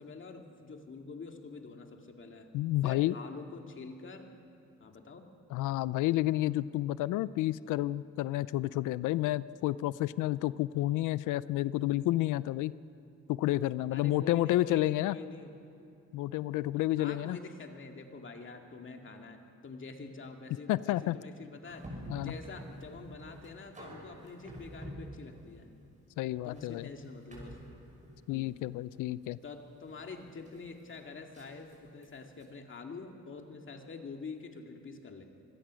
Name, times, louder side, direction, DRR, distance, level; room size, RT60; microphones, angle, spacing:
voice 1, 0.0-2.5 2.8-4.3 4.8-5.3 13.9-15.5 17.0-21.9 22.2-25.7 26.4-27.6 28.3-28.6 29.4-35.2, left 4 dB, 40° left, 3 dB, 2.2 m, -46 dB
voice 2, 2.5-3.1 5.5-12.7 13.3-15.1 16.1-17.4 20.7-21.2 22.1-22.3 26.2-26.9 28.3-29.4, left 16 dB, 85° left, 18 dB, 0.5 m, -30 dB
sound 1, 21.6-32.4, equal, 25° right, 5.9 m, -49 dB
25.0 x 17.0 x 6.3 m, 2.6 s
cardioid pair, 90°, 30 cm